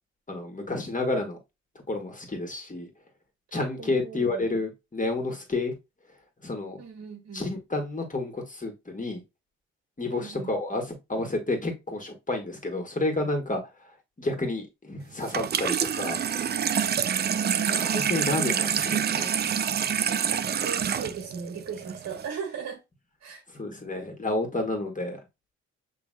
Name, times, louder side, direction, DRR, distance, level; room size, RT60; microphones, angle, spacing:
voice 1, 0.3-1.4 1.9-2.9 3.5-5.8 6.4-6.8 7.3-9.2 10.0-13.6 14.2-16.2 17.7-19.4 23.5-25.2, left 2 dB, 25° left, 1.7 m, -30 dB
voice 2, 3.8-4.5 6.8-7.5 10.1-10.5 17.1-17.6 20.1-22.8 23.2-23.4, right 6 dB, 60° right, 1.7 m, -38 dB
Water tap faucet / Sink (filling or washing), 15.2-22.3, right 8 dB, 35° right, 0.4 m, -27 dB
5.9 x 3.3 x 2.2 m
supercardioid pair, 55°, 30 cm